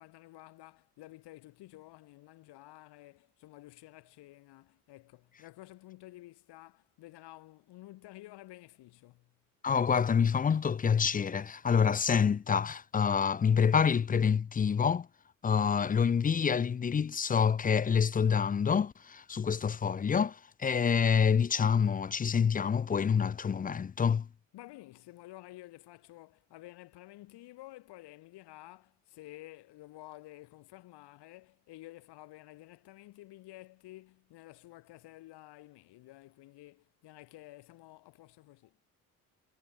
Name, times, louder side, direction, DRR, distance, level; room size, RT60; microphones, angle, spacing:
voice 1, 0.0-9.3 24.5-38.8, left 17 dB, 65° left, 1.4 m, -52 dB
voice 2, 9.6-15.1 15.4-24.3, left 6 dB, 20° left, 0.4 m, -27 dB
hypercardioid pair, 50°, 44 cm